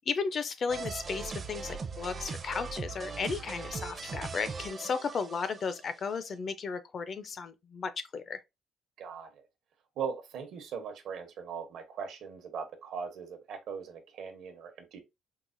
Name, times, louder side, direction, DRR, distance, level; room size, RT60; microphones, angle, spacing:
voice 1, 0.1-8.4, left 5 dB, 40° left, 0.4 m, -34 dB
sound 1, 0.7-5.8, right 4 dB, 30° right, 0.5 m, -39 dB
voice 2, 9.0-9.4 10.0-15.0, right 6 dB, 70° right, 0.9 m, -40 dB
4.6 x 2.1 x 2.5 m
cardioid pair, 145°, 0 cm